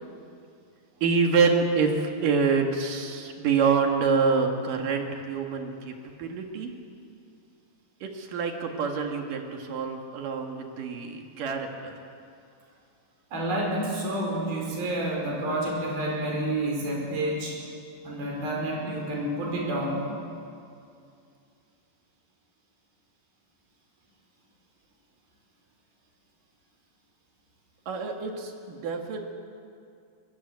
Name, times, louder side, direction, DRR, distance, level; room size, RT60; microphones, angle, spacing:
voice 1, 1.0-6.7 8.0-11.9 27.9-29.2, right 5 dB, 65° right, 3 dB, 3.6 m, -26 dB
voice 2, 13.3-17.6 18.0-20.0, right 1 dB, 80° right, -1 dB, 6.7 m, -29 dB
23.0 x 21.5 x 8.3 m, 2.4 s
omnidirectional pair, 4.2 m